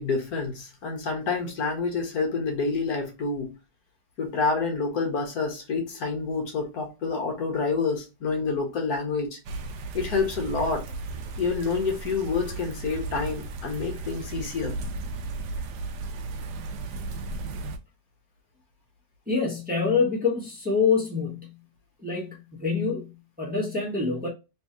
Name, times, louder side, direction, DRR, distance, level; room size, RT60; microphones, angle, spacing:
voice 1, 0.0-3.6 4.2-9.4 9.9-10.9 11.4-14.8, left 4 dB, 70° left, 1.5 m, -28 dB
sound 1, 9.5-17.8, right 3 dB, 85° right, 1.2 m, -35 dB
voice 2, 19.3-21.6 22.0-24.3, left 5 dB, 5° right, 1.1 m, -26 dB
3.4 x 3.3 x 2.9 m
omnidirectional pair, 1.7 m